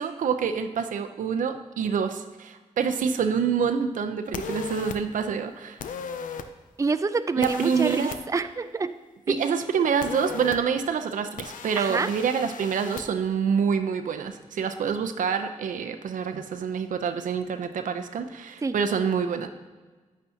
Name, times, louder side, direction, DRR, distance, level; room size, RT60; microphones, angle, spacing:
voice 1, 0.0-5.8 7.4-8.2 9.3-19.5, right 6 dB, 80° right, 7 dB, 0.6 m, -27 dB
sound 1, 4.3-5.0 5.8-6.5 7.4-8.2 10.0-10.6 11.4-13.0, left 6 dB, 85° left, 0.5 m, -36 dB
voice 2, 6.8-8.9 9.3-9.4 11.8-12.1 18.6-18.7, right 4 dB, 25° right, 11 dB, 0.4 m, -27 dB
8.9 x 8.3 x 2.8 m, 1.3 s
cardioid pair, 45°, 13 cm